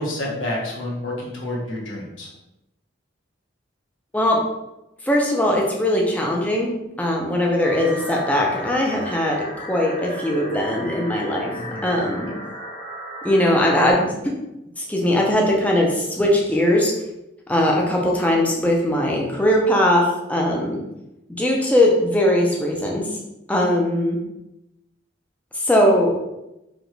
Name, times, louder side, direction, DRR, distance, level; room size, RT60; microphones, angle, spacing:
voice 1, 0.0-2.3 11.5-11.8, left 1 dB, 80° left, -3 dB, 1.2 m, -29 dB
voice 2, 5.0-6.7 7.0-11.5 11.8-12.3 13.2-14.1 14.8-16.9 17.5-20.8 21.3-23.1 23.5-24.2 25.5-26.1, left 1 dB, 10° left, -1 dB, 0.6 m, -20 dB
sound 1, 7.6-13.9, equal, 30° left, 1.1 m, -35 dB
5.0 x 2.4 x 3.2 m, 0.92 s
head